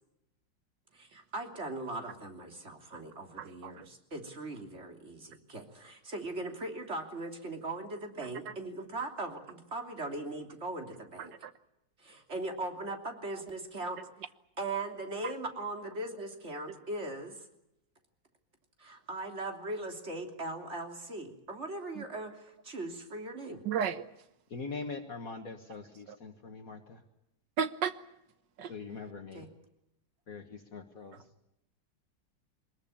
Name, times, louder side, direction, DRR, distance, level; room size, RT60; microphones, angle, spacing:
voice 1, 0.9-11.3 12.0-14.0 14.6-17.4 18.8-23.6 29.3-29.5, right 2 dB, 35° right, 3 dB, 3.4 m, -39 dB
voice 2, 3.4-3.8 8.5-8.6 11.2-11.5 15.2-15.3 22.0-22.1 23.6-24.1 26.1-26.2 27.6-28.0 28.6-28.7, right 7 dB, 75° right, 12 dB, 1.7 m, -34 dB
voice 3, 24.5-27.0 28.7-29.5 30.3-31.2, left 4 dB, 50° left, 5 dB, 1.9 m, -42 dB
23.5 x 21.0 x 8.8 m, 0.86 s
omnidirectional pair, 2.0 m